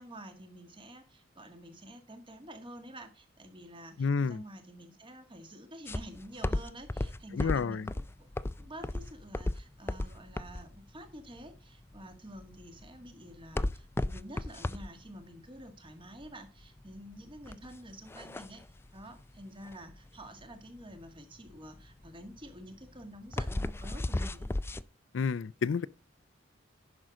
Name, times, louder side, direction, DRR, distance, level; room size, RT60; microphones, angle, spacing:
voice 1, 0.0-18.6 18.9-24.5, right 1 dB, 25° right, 1.8 m, -49 dB
voice 2, 4.0-4.4 7.3-7.9 25.1-25.9, left 5 dB, 80° left, 0.4 m, -30 dB
sound 1, 5.9-24.8, left 1 dB, 15° left, 0.3 m, -36 dB
10.5 x 6.3 x 3.8 m
head